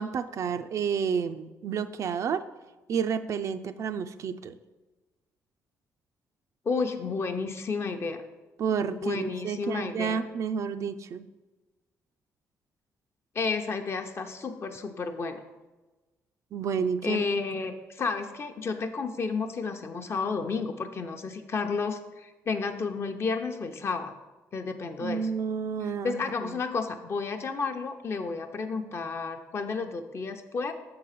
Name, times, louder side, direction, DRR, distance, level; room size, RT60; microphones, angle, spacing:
voice 1, 0.0-2.5 2.9-4.6 8.6-11.3 16.5-17.2 25.0-26.5, right 6 dB, 60° right, 10 dB, 0.4 m, -30 dB
voice 2, 6.6-8.2 9.0-10.2 13.3-15.4 17.0-24.1 24.5-25.3 26.0-30.7, left 4 dB, 45° left, 6 dB, 0.7 m, -31 dB
6.6 x 3.8 x 5.7 m, 1.2 s
cardioid pair, 85°, 6 cm